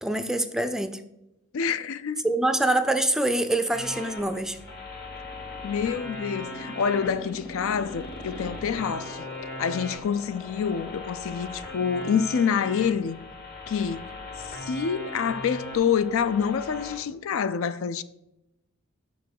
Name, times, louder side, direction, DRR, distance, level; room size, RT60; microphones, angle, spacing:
voice 1, 0.0-1.0 2.2-4.6, right 1 dB, ahead, 0.4 m, -25 dB
voice 2, 1.5-2.2 5.6-9.3 9.6-13.2 13.7-14.1 14.5-18.0, left 7 dB, 70° left, 0.4 m, -27 dB
sound 1, 3.7-17.0, left 2 dB, 50° left, 1.8 m, -39 dB
sound 2, 4.9-11.5, left 1 dB, 30° left, 1.1 m, -43 dB
5.9 x 4.5 x 6.4 m
head